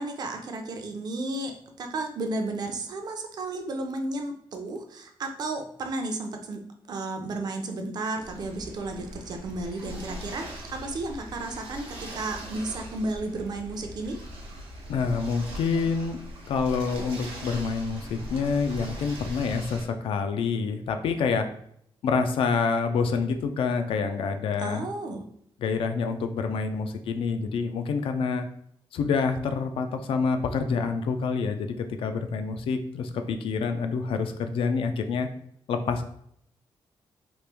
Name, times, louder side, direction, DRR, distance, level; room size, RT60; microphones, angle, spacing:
voice 1, 0.0-1.5 1.8-6.6 6.9-14.2 24.6-25.3, right 2 dB, 50° right, 4 dB, 0.4 m, -33 dB
sound 1, 8.2-19.8, equal, 90° right, 0.8 m, -40 dB
voice 2, 14.9-16.2 16.5-21.5 22.0-24.8 25.6-28.5 28.9-35.3 35.7-36.0, left 5 dB, 75° left, 7 dB, 0.4 m, -27 dB
3.0 x 2.4 x 3.3 m, 0.69 s
wide cardioid pair, 175°, 9 cm